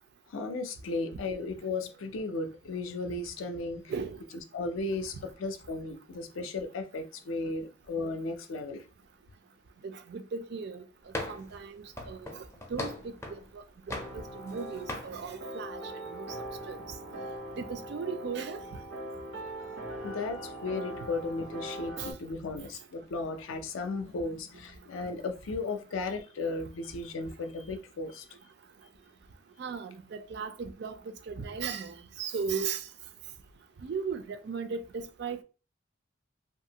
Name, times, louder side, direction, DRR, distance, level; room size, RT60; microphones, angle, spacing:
voice 1, 0.3-3.9 4.5-8.8 19.6-28.2, left 3 dB, 80° left, 0.4 m, -35 dB
voice 2, 9.8-10.8 11.3-12.4 12.7-13.1 13.5-16.3 16.7-16.8 17.6-18.6 22.0-22.1 29.6-31.0 31.3-32.8 33.8-35.4, right 5 dB, 55° right, 0.3 m, -37 dB
sound 1, 11.1-11.6 12.0-13.5 13.9-14.6 14.9-15.1, left 1 dB, 15° left, 0.4 m, -38 dB
sound 2, 13.9-22.1, right 1 dB, 85° right, 0.9 m, -41 dB
2.6 x 2.4 x 2.8 m
head